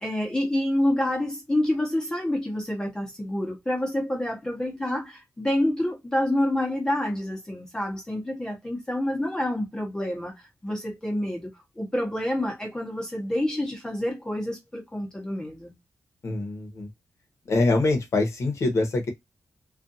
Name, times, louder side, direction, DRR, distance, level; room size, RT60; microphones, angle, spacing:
voice 1, 0.0-15.7, left 1 dB, 10° left, 0.8 m, -28 dB
voice 2, 16.2-16.9 17.5-19.1, left 2 dB, 55° left, 0.8 m, -24 dB
2.4 x 2.3 x 2.6 m
wide cardioid pair, 170°, 6 cm